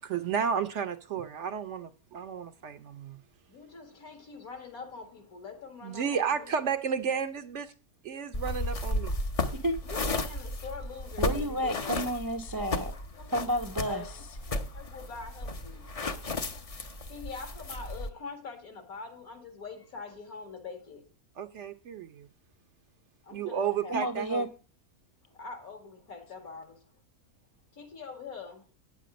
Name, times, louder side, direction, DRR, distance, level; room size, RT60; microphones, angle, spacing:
voice 1, 0.0-3.2 5.8-7.7 8.0-9.2 21.4-22.3 23.3-24.5, right 7 dB, 60° right, 0.8 m, -32 dB
voice 2, 3.5-6.5 9.8-12.1 13.2-13.3 13.8-14.1 14.7-16.4 17.1-21.1 23.2-24.0 25.2-26.9 27.7-28.7, left 4 dB, 75° left, 2.5 m, -44 dB
sound 1, 8.3-18.1, left 2 dB, 35° left, 0.6 m, -34 dB
voice 3, 11.2-12.9 13.3-14.0 23.9-24.5, equal, 30° right, 0.4 m, -30 dB
9.5 x 7.6 x 5.1 m
omnidirectional pair, 1.5 m